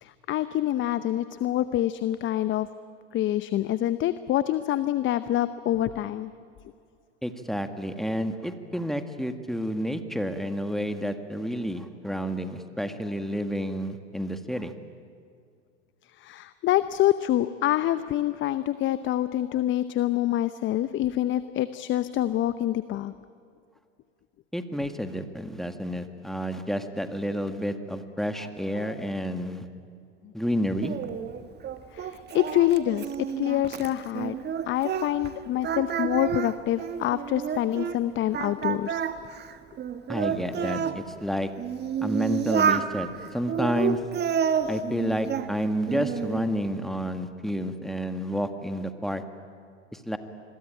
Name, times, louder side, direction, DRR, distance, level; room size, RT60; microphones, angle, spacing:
voice 1, 0.0-2.7 3.1-6.3 16.2-23.1 28.8-29.1 31.9-33.1 33.4-34.3 34.7-39.0, left 13 dB, 35° left, 13 dB, 0.8 m, -26 dB
voice 2, 7.2-14.7 24.5-29.7 30.3-31.0 40.1-41.5 42.0-44.0 44.7-49.2 49.9-50.2, equal, ahead, 7 dB, 1.8 m, -30 dB
Singing, 30.8-35.3 35.6-38.0 38.3-41.0 41.6-42.9 43.5-45.5 45.9-46.5, right 8 dB, 30° right, 1.4 m, -29 dB
27.0 x 22.0 x 9.1 m, 2.4 s
hypercardioid pair, 90°, 34 cm